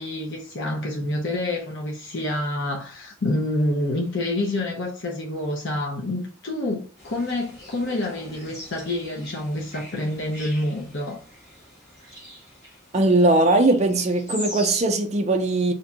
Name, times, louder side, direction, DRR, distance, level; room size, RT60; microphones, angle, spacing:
voice 1, 0.0-11.2, left 1 dB, 60° left, 0.6 m, -27 dB
sound 1, 7.0-14.8, equal, 15° left, 1.3 m, -41 dB
voice 2, 12.9-15.7, right 2 dB, 30° right, 0.4 m, -19 dB
2.6 x 2.2 x 3.8 m
head